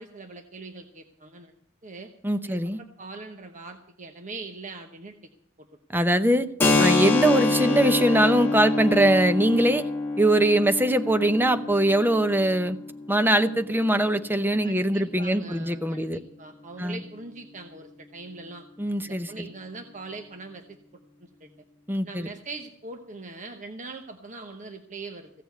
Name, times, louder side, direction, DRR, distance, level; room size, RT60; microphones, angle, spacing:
voice 1, 0.0-1.5 1.8-2.1 2.5-5.3 5.6-5.7 14.6-18.6 19.1-20.8 21.2-21.5 22.0-25.3, right 3 dB, 35° right, 5 dB, 1.0 m, -41 dB
voice 2, 2.2-2.8 5.9-6.5 6.8-9.9 10.2-12.8 13.1-16.2 16.8-17.0 18.8-19.3 21.9-22.3, right 1 dB, 10° right, 10 dB, 0.7 m, -22 dB
Keyboard (musical), 6.6-14.0, left 3 dB, 10° left, 1.7 m, -26 dB
16.0 x 6.9 x 9.4 m, 0.70 s
head